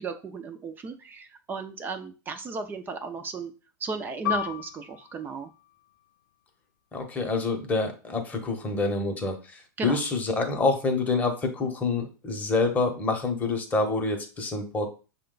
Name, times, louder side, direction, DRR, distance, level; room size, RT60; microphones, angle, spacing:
voice 1, 0.0-3.5 3.8-5.5 9.8-10.0, right 4 dB, 20° right, 7 dB, 0.5 m, -35 dB
Piano, 4.3-9.3 9.6-9.8 10.6-10.9, left 14 dB, 90° left, 0.5 m, -37 dB
voice 2, 6.9-14.9, left 3 dB, 15° left, 4 dB, 0.9 m, -27 dB
5.9 x 2.3 x 3.8 m, 0.33 s
supercardioid pair, 140°, 11 cm